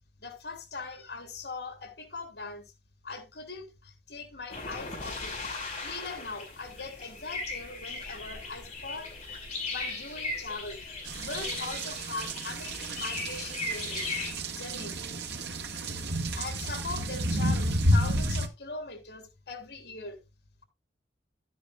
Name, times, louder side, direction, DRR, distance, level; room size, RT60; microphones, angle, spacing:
voice 1, 0.2-2.7 3.0-5.4 5.8-9.1 9.7-10.8 11.2-14.2 14.5-15.0 16.4-20.2, left 3 dB, 70° left, 3.6 m, -40 dB
sound 1, 4.5-14.3, left 3 dB, 35° left, 7.8 m, -38 dB
sound 2, 11.1-18.5, right 1 dB, 70° right, 1.4 m, -31 dB
13.0 x 10.0 x 2.3 m
head